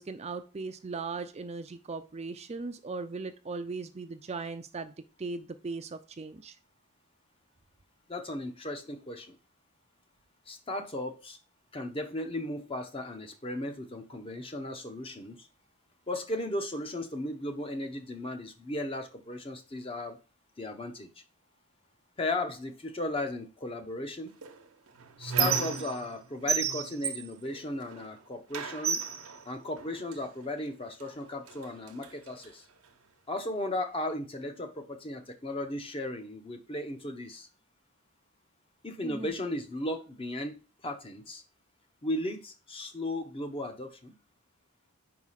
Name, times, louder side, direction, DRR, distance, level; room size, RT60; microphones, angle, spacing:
voice 1, 0.0-6.6 39.0-39.3, right 4 dB, 30° right, 0.4 m, -38 dB
voice 2, 8.1-9.4 10.5-11.4 11.7-15.5 16.1-20.2 20.6-21.1 22.2-24.3 25.2-29.0 29.5-32.7 33.3-37.5 38.8-41.4 42.0-44.1, left 1 dB, 25° left, 0.8 m, -36 dB
Squeak, 24.4-26.2 26.5-28.1 28.5-30.2 31.0-31.1 31.5-32.5, right 7 dB, 80° right, 0.9 m, -33 dB
4.9 x 4.7 x 5.6 m
head